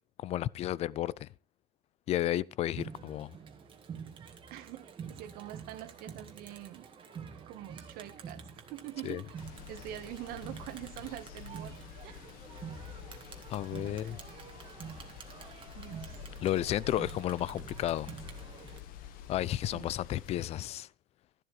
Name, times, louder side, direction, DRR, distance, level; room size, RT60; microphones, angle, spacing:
voice 1, 0.2-1.3 2.1-3.3 9.0-9.2 13.5-14.2 16.4-18.1 19.3-20.9, left 13 dB, 35° left, 0.4 m, -32 dB
Crowd, 2.8-18.8, right 6 dB, 30° right, 1.8 m, -47 dB
voice 2, 4.5-6.9 7.5-8.4 8.7-9.4 9.7-11.7 12.0-12.3 13.8-14.2 15.7-16.4 19.7-19.9, right 13 dB, 55° right, 1.5 m, -45 dB
sound 1, 9.4-20.6, left 10 dB, 55° left, 1.2 m, -48 dB
12.5 x 11.5 x 3.3 m
supercardioid pair, 125°, 18 cm